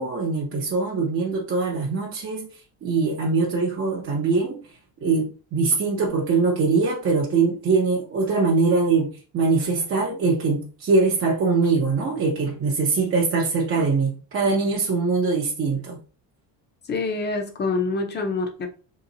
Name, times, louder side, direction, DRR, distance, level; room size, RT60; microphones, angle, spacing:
voice 1, 0.0-2.5 2.8-4.6 5.0-16.0, right 4 dB, 30° right, 0.6 m, -22 dB
voice 2, 16.8-18.7, left 3 dB, 25° left, 0.6 m, -26 dB
3.0 x 3.0 x 3.8 m
cardioid pair, 170°, 44 cm